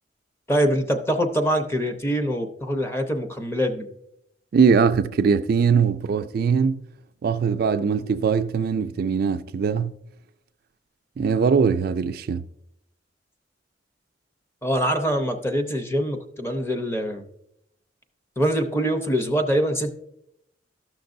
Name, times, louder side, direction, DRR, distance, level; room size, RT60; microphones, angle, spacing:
voice 1, 0.5-3.9 14.6-17.2 18.4-20.0, equal, 15° left, 0.7 m, -24 dB
voice 2, 4.5-6.8 7.2-9.9 11.2-12.4, right 6 dB, 55° right, 0.3 m, -21 dB
13.0 x 6.0 x 2.6 m
head